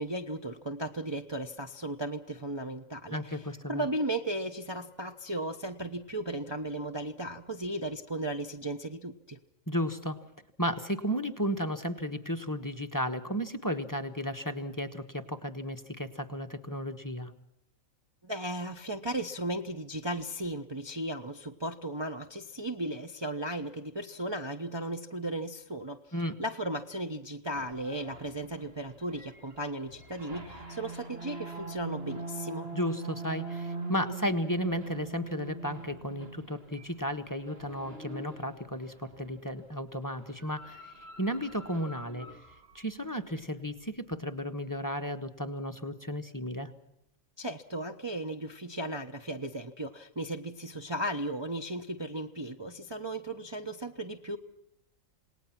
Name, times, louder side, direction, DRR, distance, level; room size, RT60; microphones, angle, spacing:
voice 1, 0.0-9.4 18.2-26.1 26.4-32.7 47.4-54.4, right 1 dB, 20° right, 4 dB, 1.0 m, -36 dB
voice 2, 3.1-3.9 9.7-10.2 10.6-17.3 26.1-26.4 32.7-40.9 41.2-42.3 42.7-46.7, equal, 15° left, 8 dB, 1.4 m, -34 dB
sound 1, 27.6-39.4 40.2-42.9, right 3 dB, 45° right, 2.4 m, -43 dB
28.0 x 19.5 x 6.0 m, 0.79 s
omnidirectional pair, 1.4 m